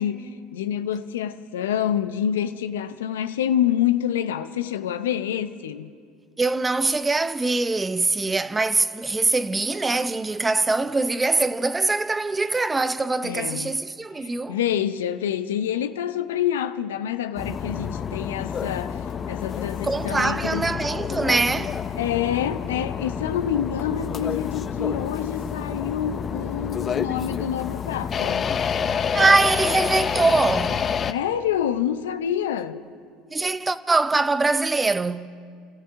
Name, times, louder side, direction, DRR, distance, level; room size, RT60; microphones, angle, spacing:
voice 1, 0.0-5.9 13.2-13.8 14.2-20.7 22.0-28.6 31.1-32.8, left 10 dB, 85° left, 0.6 m, -27 dB
voice 2, 6.4-14.6 19.8-21.8 29.1-30.9 33.3-35.3, right 3 dB, 20° right, 0.6 m, -23 dB
sound 1, 17.4-31.1, left 7 dB, 35° left, 0.6 m, -28 dB
29.0 x 13.5 x 3.6 m
hypercardioid pair, 85°, 0 cm